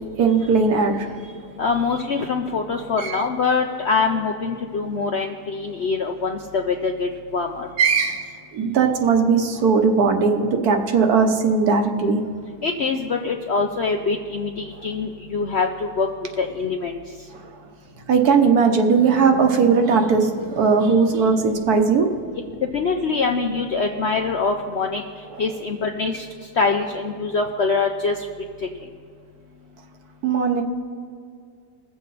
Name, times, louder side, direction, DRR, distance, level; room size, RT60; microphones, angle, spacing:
voice 1, 0.2-1.1 3.0-3.2 7.8-12.2 17.3-17.4 18.1-22.1 30.2-30.6, right 5 dB, 65° right, 4 dB, 1.4 m, -18 dB
voice 2, 1.6-7.7 12.6-16.1 16.4-17.0 22.7-25.0 25.4-26.2 26.6-28.1, left 4 dB, 60° left, 3 dB, 0.7 m, -24 dB
21.0 x 7.5 x 4.1 m, 2.3 s
omnidirectional pair, 1.8 m